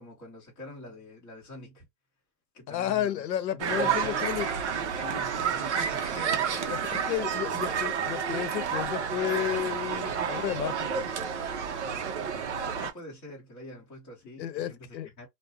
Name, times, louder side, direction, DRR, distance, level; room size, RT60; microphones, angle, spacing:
voice 1, 0.0-1.8 2.5-3.2 3.5-4.4 4.9-7.1 12.6-15.3, left 1 dB, 10° left, 0.7 m, -45 dB
voice 2, 2.7-4.5 6.7-6.8 7.1-11.1 14.4-15.1, left 11 dB, 85° left, 0.7 m, -32 dB
sound 1, 3.6-12.9, right 7 dB, 45° right, 0.5 m, -30 dB
2.4 x 2.0 x 2.6 m
hypercardioid pair, 165°, 49 cm